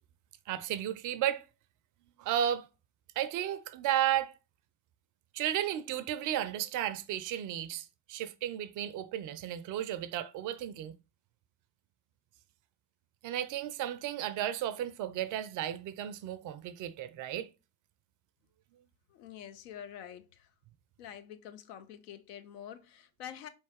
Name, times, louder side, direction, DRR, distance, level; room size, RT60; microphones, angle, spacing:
voice 1, 0.5-1.4 2.2-2.7 3.2-4.3 5.3-10.9 13.2-17.5, right 11 dB, 45° right, 0.4 m, -33 dB
voice 2, 19.1-20.5 21.0-23.5, left 9 dB, 70° left, 0.7 m, -47 dB
4.3 x 3.1 x 2.9 m
figure-of-eight pair, 55°, 49 cm